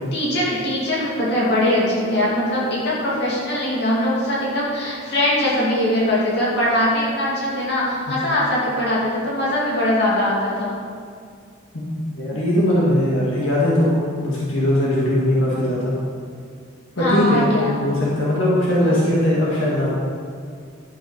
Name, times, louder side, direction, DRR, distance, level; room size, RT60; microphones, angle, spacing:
voice 1, 0.1-10.7 17.0-17.7 18.8-19.0, left 1 dB, 55° left, -6 dB, 2.6 m, -21 dB
voice 2, 11.7-15.9 17.0-17.5 17.8-19.9, left 1 dB, 85° left, -7 dB, 1.9 m, -20 dB
11.5 x 5.8 x 5.1 m, 2.2 s
head